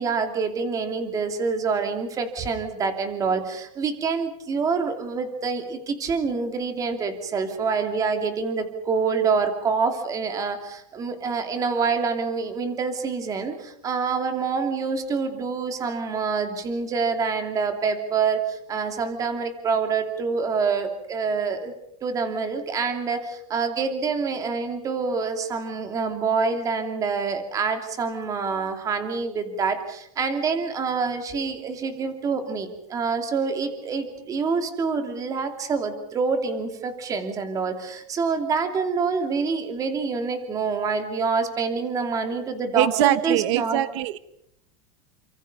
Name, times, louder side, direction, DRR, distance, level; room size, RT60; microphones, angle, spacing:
voice 1, 0.0-21.7 22.0-43.8, right 5 dB, 20° right, 6 dB, 2.8 m, -26 dB
voice 2, 42.7-44.2, right 15 dB, 50° right, 13 dB, 1.2 m, -22 dB
30.0 x 26.5 x 5.5 m, 0.73 s
supercardioid pair, 175°, 19 cm